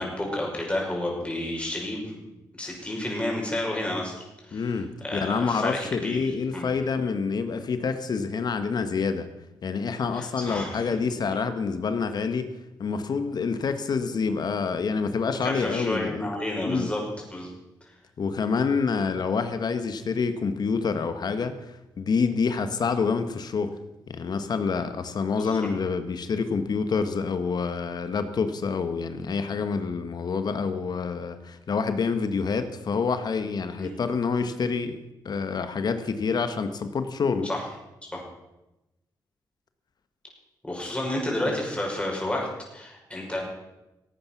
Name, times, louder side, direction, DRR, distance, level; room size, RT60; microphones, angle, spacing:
voice 1, 0.0-2.2 2.6-4.1 4.4-4.7 5.0-6.7 10.1-11.0 15.4-17.0 17.3-17.5 25.4-25.7 33.8-33.9 37.4-37.6 38.0-38.2 40.6-42.5 42.7-43.4, left 1 dB, 15° left, -1 dB, 5.8 m, -31 dB
voice 2, 4.5-9.3 9.6-12.5 12.8-16.3 16.7-16.9 18.2-21.6 22.0-23.7 24.1-35.0 35.2-37.5, left 5 dB, 60° left, 10 dB, 1.4 m, -27 dB
17.0 x 9.0 x 5.9 m, 0.96 s
cardioid pair, 65°, 8 cm